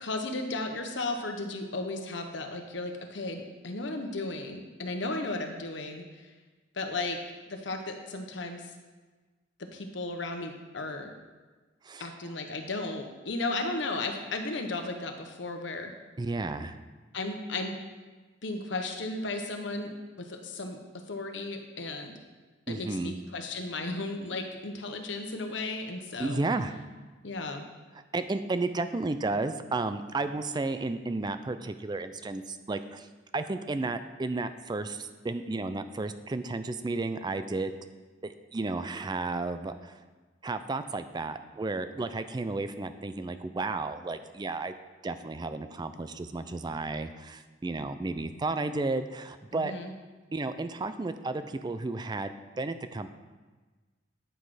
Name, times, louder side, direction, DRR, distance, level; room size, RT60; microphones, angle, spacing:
voice 1, 0.0-6.3 6.7-7.2 7.5-8.7 9.6-11.1 12.0-15.9 17.1-17.8 18.4-20.8 21.1-22.1 22.7-26.4 27.2-27.7 49.5-49.9, left 2 dB, 65° left, 5 dB, 1.0 m, -35 dB
voice 2, 16.2-16.8 22.7-23.2 26.2-26.8 28.1-33.1 33.3-37.8 38.2-40.0 40.4-44.7 45.0-49.7 50.3-53.1, right 3 dB, 20° right, 10 dB, 0.4 m, -33 dB
9.1 x 6.2 x 4.9 m, 1.3 s
head